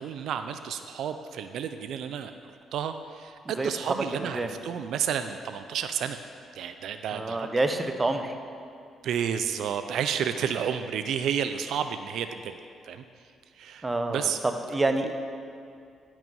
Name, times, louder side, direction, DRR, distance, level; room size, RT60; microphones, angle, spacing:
voice 1, 0.0-2.3 2.7-6.2 6.5-7.5 9.0-12.5 12.9-13.0 13.6-14.4 15.0-15.1, right 8 dB, 75° right, 9 dB, 0.3 m, -31 dB
voice 2, 4.1-4.5 7.1-8.3 13.8-14.3 14.7-15.1, right 2 dB, 20° right, 6 dB, 0.7 m, -27 dB
10.0 x 6.0 x 5.4 m, 2.4 s
cardioid pair, 90°, 0 cm